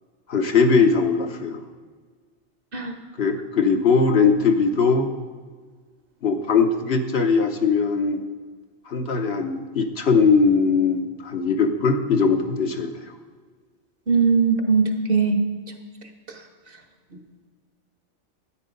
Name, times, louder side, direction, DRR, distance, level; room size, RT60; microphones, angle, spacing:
voice 1, 0.3-1.6 3.2-5.1 6.2-8.2 8.9-12.9, left 5 dB, 65° left, 5 dB, 1.2 m, -20 dB
voice 2, 14.1-15.4 16.3-16.4, right 5 dB, 50° right, 6 dB, 1.4 m, -20 dB
13.0 x 9.5 x 5.2 m, 1.5 s
omnidirectional pair, 1.2 m